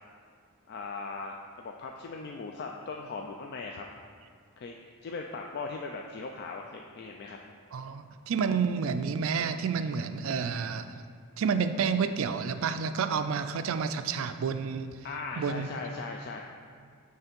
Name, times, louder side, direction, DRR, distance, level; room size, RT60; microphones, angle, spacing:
voice 1, 0.7-3.9 4.6-4.8 5.0-7.4 15.0-16.4, left 4 dB, 50° left, 2 dB, 0.3 m, -39 dB
voice 2, 7.7-10.9 11.4-14.9 15.4-15.7, right 6 dB, 65° right, 10 dB, 0.4 m, -29 dB
7.0 x 3.3 x 5.2 m, 2.2 s
head